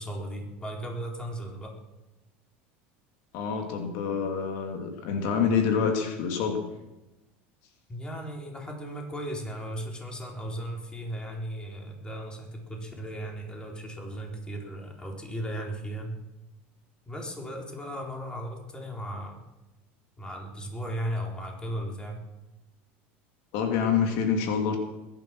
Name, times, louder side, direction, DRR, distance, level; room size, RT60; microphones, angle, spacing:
voice 1, 0.0-1.7 7.9-16.1 17.1-19.4 20.2-22.2, equal, 15° left, 0 dB, 4.0 m, -36 dB
voice 2, 3.3-6.6 23.5-24.8, left 6 dB, 70° left, 4 dB, 2.7 m, -27 dB
21.5 x 11.0 x 6.2 m, 1.0 s
supercardioid pair, 110°, 6 cm